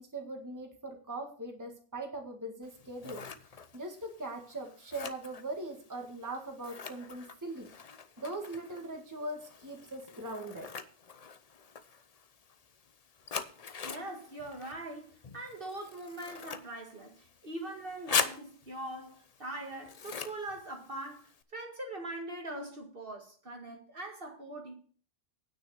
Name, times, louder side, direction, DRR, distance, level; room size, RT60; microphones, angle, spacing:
voice 1, 0.0-3.3 3.7-7.7 8.2-10.7, right 2 dB, 15° right, 1.8 m, -40 dB
Scissors, 2.6-21.4, left 6 dB, 40° left, 0.7 m, -42 dB
voice 2, 13.8-24.8, right 1 dB, 50° right, 2.1 m, -42 dB
9.6 x 6.3 x 6.6 m
omnidirectional pair, 1.2 m